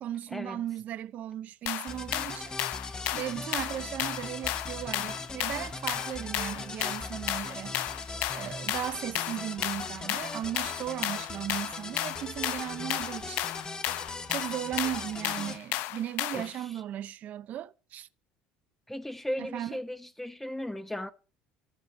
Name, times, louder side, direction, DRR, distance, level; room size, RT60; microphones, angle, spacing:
voice 1, 0.0-2.6 3.1-7.8 8.3-13.5 14.3-18.1 19.4-19.8, right 12 dB, 50° right, 0.6 m, -36 dB
sound 1, 1.7-16.6, left 16 dB, 70° left, 0.5 m, -34 dB
sound 2, 1.9-15.6, left 3 dB, 25° left, 1.1 m, -39 dB
voice 2, 16.3-16.7 18.9-21.1, left 1 dB, 5° left, 0.8 m, -36 dB
13.0 x 4.7 x 7.5 m
supercardioid pair, 85°, 3 cm